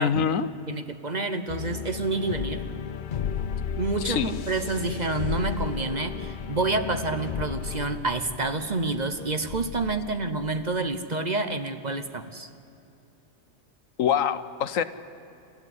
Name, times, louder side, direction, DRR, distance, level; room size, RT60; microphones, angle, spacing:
voice 1, 0.0-0.5 4.0-4.3 14.0-14.8, left 8 dB, 80° left, 13 dB, 1.2 m, -24 dB
voice 2, 0.7-2.6 3.8-12.5, right 3 dB, 35° right, 9 dB, 0.9 m, -28 dB
sound 1, 1.5-10.9, left 7 dB, 50° left, 0.6 m, -34 dB
28.5 x 14.5 x 9.5 m, 2.8 s
omnidirectional pair, 1.4 m